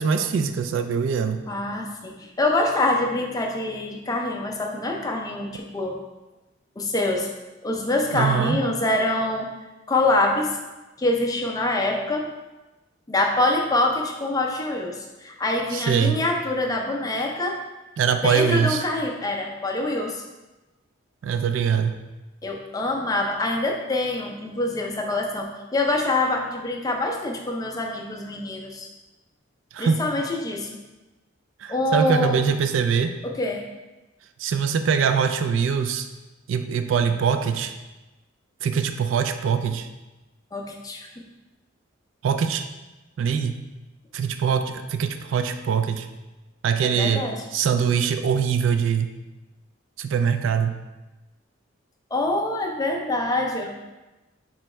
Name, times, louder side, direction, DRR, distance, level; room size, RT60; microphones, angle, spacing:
voice 1, 0.0-1.5 8.1-8.6 15.7-16.2 18.0-18.8 21.2-22.0 29.7-30.0 31.6-33.1 34.4-36.1 36.5-37.8 38.6-39.9 42.2-42.6 43.2-43.6 44.1-46.1 46.6-49.1 50.0-50.8, right 6 dB, 65° right, 8 dB, 0.3 m, -23 dB
voice 2, 1.5-6.0 6.8-7.3 7.6-9.5 9.9-10.6 11.0-12.3 13.1-17.6 18.2-20.2 22.4-28.9 29.8-30.7 31.7-32.4 33.2-33.6 40.5-41.1 46.8-47.4 52.1-53.7, left 2 dB, 20° left, 1 dB, 0.5 m, -25 dB
4.5 x 3.1 x 3.2 m, 1.1 s
head